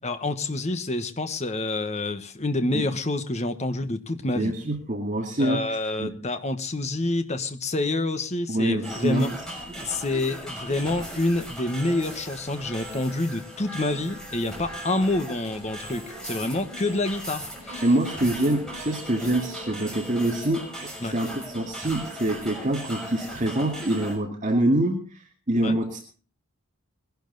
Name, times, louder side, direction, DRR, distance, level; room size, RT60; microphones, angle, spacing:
voice 1, 0.0-4.5 5.4-9.3 9.8-17.8 21.0-21.1 25.6-25.8, left 2 dB, 30° left, 8 dB, 1.3 m, -27 dB
voice 2, 4.3-6.2 8.5-9.3 17.8-26.1, right 1 dB, 35° right, 1 dB, 2.2 m, -25 dB
sound 1, 8.8-24.2, equal, 5° left, 6.4 m, -38 dB
21.0 x 12.0 x 4.0 m, 0.36 s
head